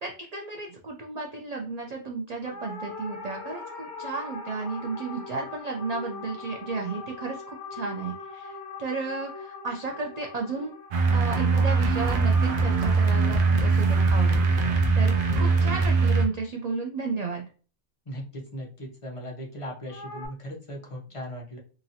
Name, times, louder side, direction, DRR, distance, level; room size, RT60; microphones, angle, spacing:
voice 1, 0.0-10.7 11.1-17.4, right 4 dB, 85° right, 1 dB, 0.3 m, -33 dB
sound 1, 2.4-12.9 19.9-20.3, left 3 dB, 75° left, 1.0 m, -41 dB
sound 2, 10.9-16.3, right 4 dB, 55° right, 0.7 m, -22 dB
voice 2, 18.1-21.6, equal, 35° left, -2 dB, 0.5 m, -38 dB
2.9 x 2.5 x 2.6 m, 0.38 s
omnidirectional pair, 1.2 m